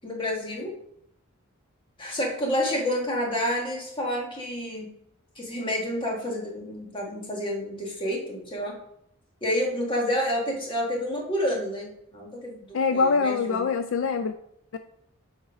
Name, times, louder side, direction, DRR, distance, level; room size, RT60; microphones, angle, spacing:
voice 1, 0.0-0.7 2.0-4.9 5.3-8.7 9.4-13.7, equal, 25° left, -1 dB, 1.5 m, -29 dB
voice 2, 12.7-14.3 14.7-14.8, left 4 dB, 65° left, 9 dB, 0.4 m, -24 dB
7.1 x 4.3 x 5.0 m, 0.76 s
head